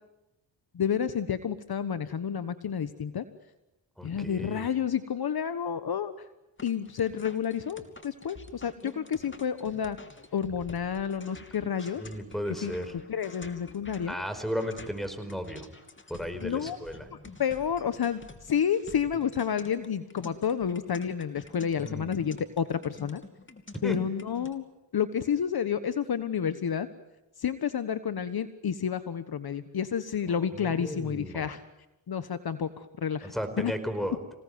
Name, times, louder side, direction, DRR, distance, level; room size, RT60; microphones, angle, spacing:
voice 1, 0.7-3.2 4.0-6.1 6.6-10.0 10.3-12.0 12.6-12.7 13.1-14.1 16.4-16.8 17.4-23.2 23.8-24.6 24.9-26.9 27.4-31.6 32.1-33.3 33.6-33.7, left 8 dB, 50° left, 12 dB, 1.3 m, -30 dB
voice 2, 4.0-4.6 8.8-8.9 12.0-12.9 14.1-15.7 16.1-17.0 21.8-22.3 23.8-24.0 30.3-31.5 33.2-34.2, equal, ahead, 9 dB, 4.7 m, -35 dB
sound 1, 6.6-24.5, left 3 dB, 25° left, 2.8 m, -49 dB
27.0 x 18.0 x 9.4 m, 0.96 s
cardioid pair, 70°, 46 cm